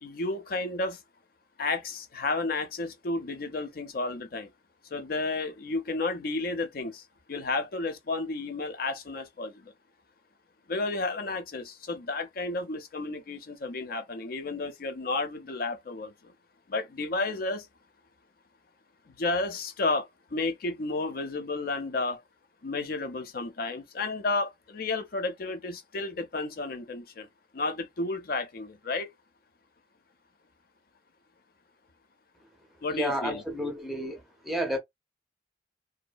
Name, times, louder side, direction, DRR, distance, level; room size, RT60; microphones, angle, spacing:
voice 1, 0.0-1.0 1.6-4.5 4.9-7.0 7.3-9.7 10.7-16.1 16.7-17.7 19.2-22.2 22.6-27.3 27.5-29.1 32.8-33.4, left 3 dB, 55° left, 0.6 m, -32 dB
voice 2, 32.9-34.8, equal, ahead, 0.6 m, -31 dB
2.7 x 2.1 x 2.2 m
head